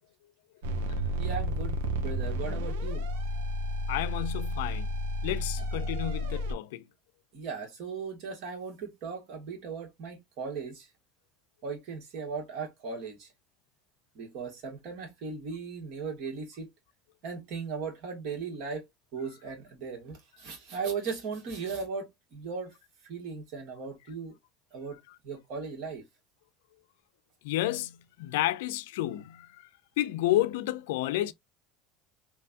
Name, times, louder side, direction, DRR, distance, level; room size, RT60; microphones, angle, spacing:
sound 1, 0.6-6.5, equal, 85° right, 0.6 m, -31 dB
voice 1, 1.2-3.1 5.6-5.7 7.3-10.9 11.6-13.3 14.1-16.7 17.2-18.8 19.1-22.7 23.1-24.3 24.7-25.0 25.2-26.0, right 5 dB, 60° right, 1.5 m, -37 dB
voice 2, 3.9-4.9 5.2-6.8 27.4-29.5 30.0-31.3, left 14 dB, 80° left, 0.3 m, -30 dB
3.1 x 2.2 x 2.5 m
supercardioid pair, 100°, 0 cm